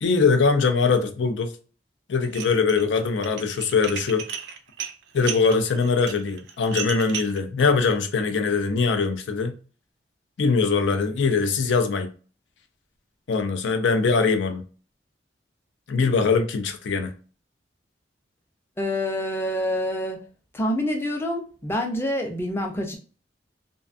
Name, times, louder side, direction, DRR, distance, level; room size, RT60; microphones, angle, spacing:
voice 1, 0.0-1.5 2.1-4.2 5.1-9.5 10.4-12.1 13.3-14.6 15.9-17.2, left 4 dB, 85° left, 0.4 m, -22 dB
Dishes pots and pans, 2.2-2.8 3.2-7.4, right 8 dB, 65° right, 0.3 m, -34 dB
voice 2, 18.8-20.2 20.5-23.0, left 1 dB, 15° left, 0.4 m, -27 dB
2.5 x 2.2 x 2.4 m
head